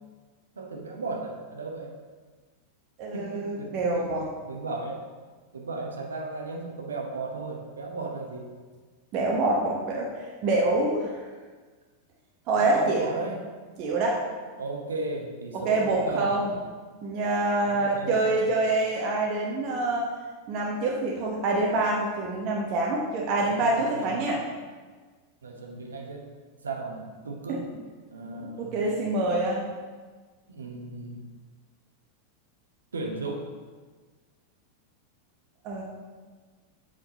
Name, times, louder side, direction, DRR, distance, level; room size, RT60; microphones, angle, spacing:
voice 1, 0.6-2.0 3.1-4.0 4.4-5.0 5.5-8.5 12.6-13.4 14.6-16.3 17.6-18.5 23.3-24.3 25.4-26.3 26.6-27.7 28.1-28.9 30.5-31.2 32.9-33.5, right 3 dB, 70° right, 0 dB, 0.9 m, -35 dB
voice 2, 3.0-4.3 9.1-10.1 10.4-11.2 12.5-13.1 13.8-14.2 15.5-16.5 17.0-20.1 20.5-24.4 27.5-27.6 28.3-29.7 35.6-35.8, right 2 dB, 40° right, -2 dB, 0.9 m, -26 dB
7.8 x 3.8 x 4.1 m, 1.4 s
figure-of-eight pair, 90°, 0 cm